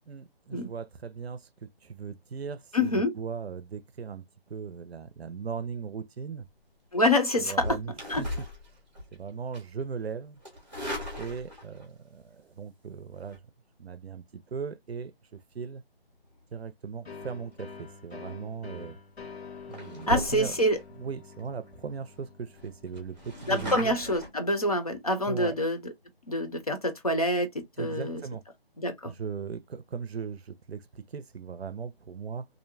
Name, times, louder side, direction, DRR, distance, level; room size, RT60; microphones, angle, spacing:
voice 1, 0.1-4.2 4.5-6.5 7.4-8.3 9.1-10.4 11.2-13.4 13.8-15.8 16.5-19.0 19.7-20.5 21.0-24.0 25.3-25.5 27.8-28.4 29.0-32.5, right 6 dB, 85° right, 0.6 m, -38 dB
voice 2, 2.7-3.1 6.9-7.8 8.1-8.2 20.1-20.8 23.5-25.9 26.3-28.2 28.8-29.1, left 1 dB, 35° left, 0.6 m, -26 dB
sound 1, 7.5-9.2 9.5-9.8 10.4-11.8 13.1-13.4 18.4-18.7 19.2-19.3 19.7-20.8 21.3-21.4 21.7-21.8 22.1-22.2 22.5-24.3, left 1 dB, 15° right, 0.7 m, -37 dB
sound 2, 17.0-24.5, left 5 dB, 90° left, 1.2 m, -47 dB
2.7 x 2.2 x 2.6 m
figure-of-eight pair, 170°, 31 cm